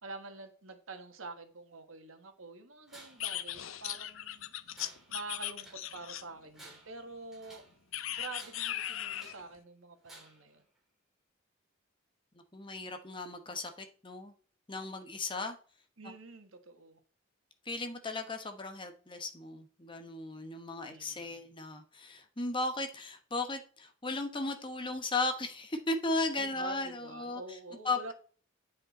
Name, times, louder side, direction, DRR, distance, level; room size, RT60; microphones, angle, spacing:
voice 1, 0.0-4.5 5.1-7.6 8.1-10.6 16.0-17.0 20.8-21.5 26.4-28.1, right 3 dB, 85° right, 6 dB, 1.5 m, -47 dB
Tools, 2.9-3.3 3.6-4.3 4.7-5.9 6.4-7.8 8.3-9.5 10.0-10.5, right 1 dB, ahead, 3.3 m, -55 dB
sound 1, 3.2-6.5 7.9-9.4, left 12 dB, 80° left, 0.6 m, -38 dB
voice 2, 12.5-14.3 14.7-15.6 17.6-27.4 27.8-28.1, left 2 dB, 25° left, 6 dB, 1.0 m, -36 dB
9.5 x 5.3 x 4.1 m, 0.41 s
head